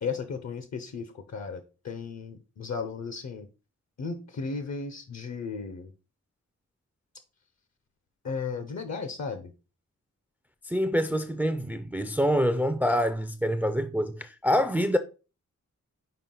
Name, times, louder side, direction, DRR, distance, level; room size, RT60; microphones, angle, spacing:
voice 1, 0.0-3.5 4.0-5.9 8.2-9.5, left 5 dB, 60° left, 0.7 m, -35 dB
voice 2, 10.7-15.0, equal, 5° right, 0.3 m, -26 dB
5.7 x 4.5 x 3.8 m
wide cardioid pair, 155°, 30 cm